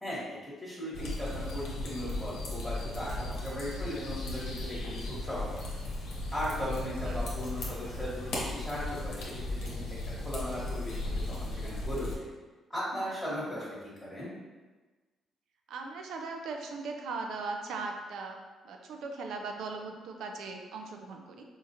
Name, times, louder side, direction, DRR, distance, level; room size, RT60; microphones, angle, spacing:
voice 1, 0.0-5.7 6.3-9.9 10.2-12.3 12.7-14.3, equal, 10° left, -9 dB, 1.3 m, -37 dB
sound 1, 0.9-12.2, left 2 dB, 85° left, 1.1 m, -36 dB
voice 2, 15.7-18.4 18.6-21.4, right 4 dB, 80° right, 3 dB, 0.5 m, -39 dB
4.4 x 2.4 x 2.8 m, 1.3 s
cardioid pair, 90°, 0 cm